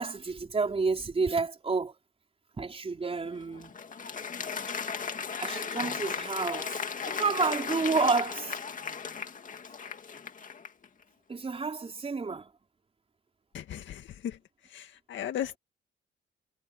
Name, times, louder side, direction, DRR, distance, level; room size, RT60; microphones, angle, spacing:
voice 1, 0.0-1.9 2.6-3.7 5.4-6.8 7.0-8.6 11.3-12.5, right 4 dB, 30° right, 4.6 m, -30 dB
Applause, 3.2-10.9, left 6 dB, 40° left, 2.2 m, -36 dB
voice 2, 13.5-14.4 14.6-15.6, left 10 dB, 70° left, 1.9 m, -36 dB
cardioid pair, 90°, 20 cm